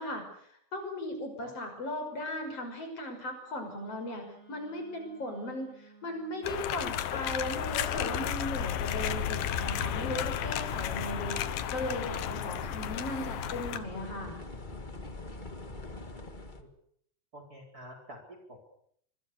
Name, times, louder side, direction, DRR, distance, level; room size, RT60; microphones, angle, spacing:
voice 1, 0.0-14.4, left 1 dB, 40° left, 5 dB, 6.7 m, -37 dB
Wind instrument woodwind instrument, 3.7-8.1, right 4 dB, 90° right, 7.9 m, -57 dB
sound 1, 6.4-13.8, left 10 dB, 80° left, 3.0 m, -33 dB
sound 2, 9.0-16.6, left 2 dB, 20° left, 1.3 m, -43 dB
voice 2, 17.3-18.6, equal, 25° right, 4 dB, 4.6 m, -48 dB
26.5 x 23.0 x 6.7 m, 0.66 s
omnidirectional pair, 4.1 m